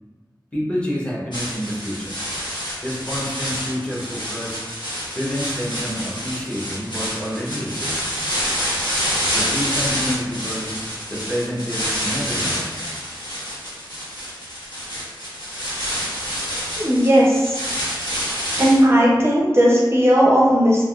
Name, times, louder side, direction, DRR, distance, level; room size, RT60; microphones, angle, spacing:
voice 1, 0.5-2.1 2.8-4.6 5.1-8.2 9.3-10.7 11.1-12.7, equal, 15° left, -5 dB, 0.9 m, -28 dB
sound 1, 1.3-18.8, equal, 70° left, 0.9 m, -27 dB
voice 2, 16.8-17.6 18.6-20.8, equal, 30° right, -5 dB, 0.6 m, -16 dB
3.5 x 2.5 x 2.4 m, 1.2 s
wide cardioid pair, 45°, 8 cm